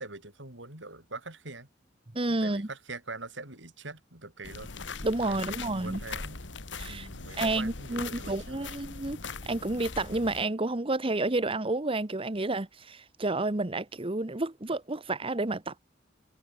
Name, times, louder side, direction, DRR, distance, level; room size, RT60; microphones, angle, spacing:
voice 1, 0.0-1.7 2.3-4.7 5.2-6.4 6.9-8.8, right 3 dB, 80° right, 6.0 m, -43 dB
voice 2, 2.1-2.7 5.0-6.0 6.7-7.1 7.4-9.2 9.5-15.8, right 2 dB, 30° right, 1.1 m, -30 dB
sound 1, 4.4-10.4, left 4 dB, 80° left, 2.1 m, -40 dB
head